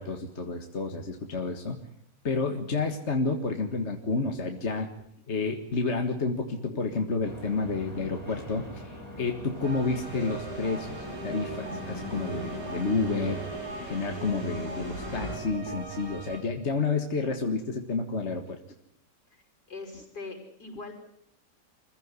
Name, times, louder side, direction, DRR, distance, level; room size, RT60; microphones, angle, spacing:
voice 1, 0.0-1.8 2.2-4.9 5.3-13.4 13.8-18.6, left 3 dB, 40° left, 4 dB, 1.9 m, -30 dB
sound 1, 7.2-13.6, left 1 dB, 10° left, 7.0 m, -43 dB
sound 2, 9.5-15.4, left 1 dB, 40° right, 7.8 m, -40 dB
sound 3, 9.6-16.4, right 3 dB, 85° right, 4.4 m, -41 dB
voice 2, 19.7-20.9, left 3 dB, 65° left, 2 dB, 6.4 m, -41 dB
25.5 x 16.0 x 9.7 m, 0.73 s
omnidirectional pair, 1.8 m